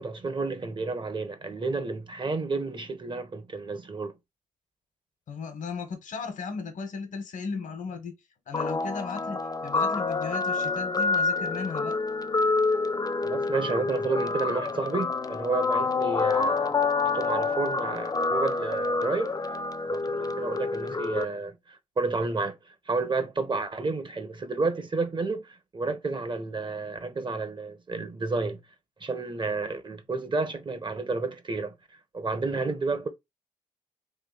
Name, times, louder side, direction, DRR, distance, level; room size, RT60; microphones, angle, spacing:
voice 1, 0.0-4.1 13.2-16.8 17.0-19.3 19.8-22.6 22.9-28.6 29.0-31.7 32.1-33.1, right 3 dB, 35° right, 1.1 m, -31 dB
voice 2, 5.3-8.1 8.5-12.0, left 5 dB, 75° left, 1.3 m, -36 dB
Guitar, 8.5-21.2, left 4 dB, 30° left, 0.6 m, -27 dB
3.5 x 2.8 x 4.0 m
supercardioid pair, 55°, 13 cm